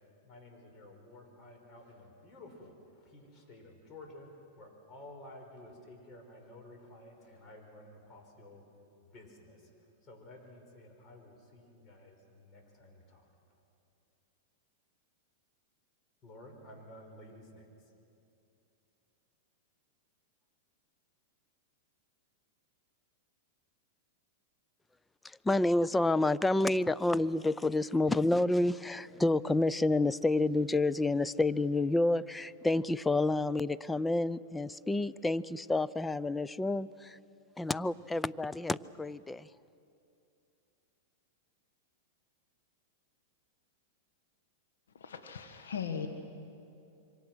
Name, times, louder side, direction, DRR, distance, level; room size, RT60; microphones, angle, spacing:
voice 1, 0.0-8.7 9.0-13.3 16.2-17.9, left 1 dB, 30° left, 2 dB, 5.5 m, -53 dB
voice 2, 25.2-37.2 37.6-39.5, left 2 dB, 10° left, 17 dB, 0.5 m, -29 dB
voice 3, 44.9-46.1, left 7 dB, 85° left, 5 dB, 1.6 m, -38 dB
26.0 x 24.0 x 6.3 m, 2.7 s
hypercardioid pair, 120°, 0 cm